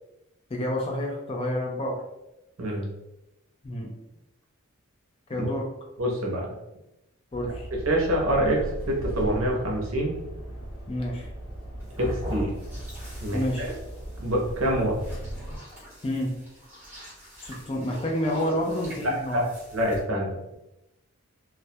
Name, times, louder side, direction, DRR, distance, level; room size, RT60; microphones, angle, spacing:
voice 1, 0.5-2.0 3.6-3.9 5.3-5.7 7.3-7.7 10.9-11.3 13.3-13.7 16.0-16.3 17.4-19.4, left 1 dB, 25° left, 0 dB, 0.4 m, -29 dB
voice 2, 2.6-2.9 6.0-6.5 7.8-10.1 12.0-12.5 13.2-13.7 14.2-14.9 19.0-20.5, equal, 65° right, -1 dB, 0.6 m, -26 dB
sound 1, 7.3-15.6, right 1 dB, 70° left, 1.1 m, -38 dB
sound 2, 11.8-20.0, equal, 10° right, 0.7 m, -41 dB
2.2 x 2.1 x 2.7 m, 0.91 s
head